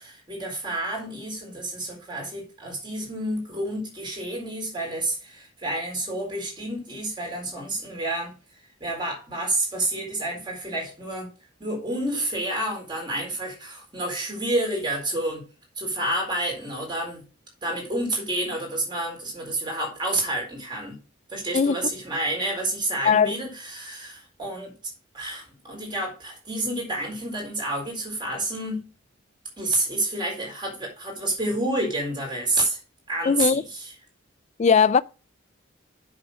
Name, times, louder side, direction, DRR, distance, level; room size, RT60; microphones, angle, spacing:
voice 1, 0.0-8.3 8.8-11.3 11.6-15.4 15.8-17.2 17.6-21.0 21.3-24.7 25.1-28.8 29.6-32.8 33.1-33.9, right 1 dB, 25° right, 4.2 m, -29 dB
voice 2, 33.3-33.6 34.6-35.0, left 6 dB, 35° left, 0.3 m, -19 dB
7.7 x 6.5 x 5.1 m
head